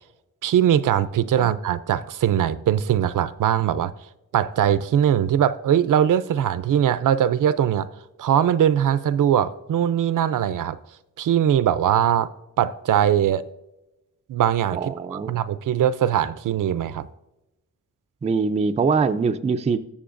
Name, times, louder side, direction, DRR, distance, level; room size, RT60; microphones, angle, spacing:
voice 1, 0.4-3.9 4.3-7.9 8.2-10.8 11.2-12.3 12.6-13.5 14.3-17.1, right 10 dB, 70° right, 0.5 m, -21 dB
voice 2, 14.7-15.3 18.2-19.8, right 5 dB, 20° right, 0.4 m, -23 dB
18.5 x 7.0 x 2.5 m
wide cardioid pair, 155°, 32 cm